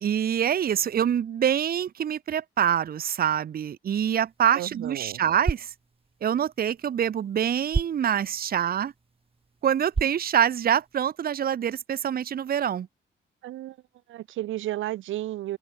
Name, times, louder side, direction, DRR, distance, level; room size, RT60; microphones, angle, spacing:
voice 1, 0.0-5.7 6.2-8.9 9.6-12.9, right 9 dB, 50° right, 1.0 m, -25 dB
sound 1, 4.2-11.1, right 4 dB, 30° right, 4.1 m, -36 dB
voice 2, 4.5-5.2 13.4-13.8 14.1-15.6, right 14 dB, 80° right, 1.0 m, -33 dB
open air
cardioid pair, 90°, 20 cm